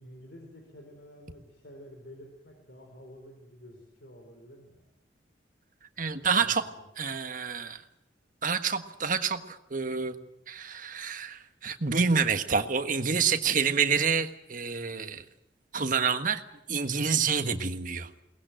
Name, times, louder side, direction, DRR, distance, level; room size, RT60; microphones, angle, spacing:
voice 1, 0.0-4.8 6.0-6.8, equal, 65° left, 3 dB, 4.2 m, -50 dB
voice 2, 6.0-6.7 7.0-7.8 8.4-10.1 10.5-15.2 15.7-16.4 16.7-18.1, right 5 dB, 45° right, 8 dB, 1.5 m, -28 dB
22.5 x 19.5 x 9.1 m, 0.81 s
head